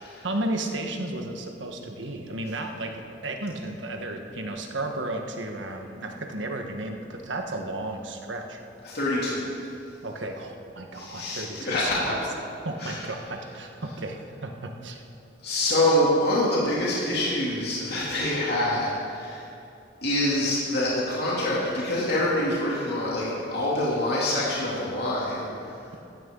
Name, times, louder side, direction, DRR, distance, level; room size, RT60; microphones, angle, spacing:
voice 1, 0.2-8.6 10.0-12.2 12.6-15.0, right 2 dB, 80° right, 3 dB, 1.4 m, -33 dB
voice 2, 8.8-9.4 10.9-12.2 12.8-13.0 15.4-19.5 20.0-25.8, left 1 dB, 60° left, -7 dB, 2.9 m, -26 dB
16.0 x 14.0 x 3.9 m, 2.7 s
head